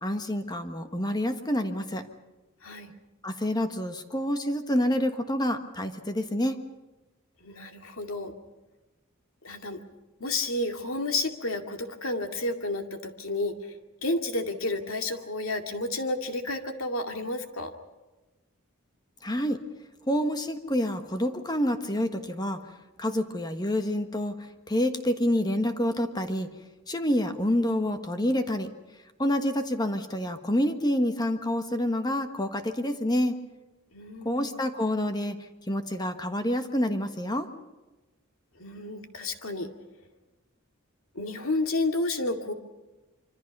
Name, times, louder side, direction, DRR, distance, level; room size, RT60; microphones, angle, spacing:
voice 1, 0.0-2.0 3.2-6.6 19.2-19.6 20.1-22.6 23.0-24.3 24.7-26.5 26.9-28.7 29.2-33.3 34.2-35.4 35.7-37.5, left 1 dB, 20° left, 7 dB, 1.4 m, -27 dB
voice 2, 2.6-2.9 7.4-8.3 9.4-9.8 10.2-13.5 14.0-17.7 33.9-34.6 38.6-39.7 41.1-42.5, left 2 dB, 75° left, 5 dB, 2.3 m, -31 dB
26.0 x 25.0 x 5.4 m, 1.1 s
head